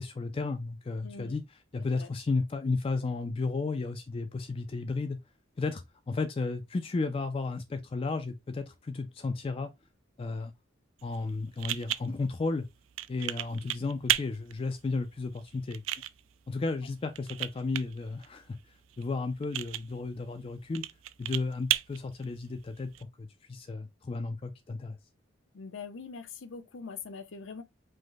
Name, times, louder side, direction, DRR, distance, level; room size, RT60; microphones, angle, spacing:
voice 1, 0.0-1.4 1.7-5.2 5.6-9.7 10.2-10.5 11.0-12.7 13.1-15.8 16.5-18.6 19.0-20.8 21.2-25.0, left 3 dB, 30° left, 0.3 m, -33 dB
voice 2, 1.0-1.3 2.0-2.1 25.5-27.6, left 5 dB, 75° left, 0.6 m, -42 dB
sound 1, 11.0-23.0, right 14 dB, 85° right, 0.4 m, -37 dB
5.1 x 2.1 x 3.8 m
head